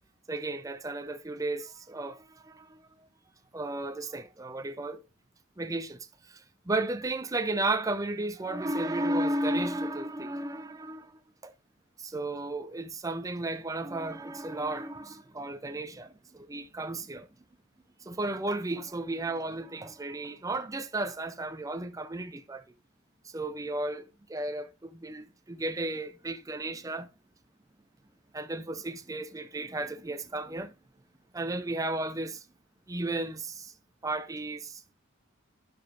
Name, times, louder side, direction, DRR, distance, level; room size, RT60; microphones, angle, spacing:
voice 1, 0.3-3.1 3.5-5.0 5.6-11.5 12.0-17.3 18.0-22.6 23.2-27.1 28.3-30.7 31.3-32.4 32.9-33.7 34.0-34.9, right 2 dB, 15° right, 0.5 m, -34 dB
15.0 x 5.1 x 2.5 m
head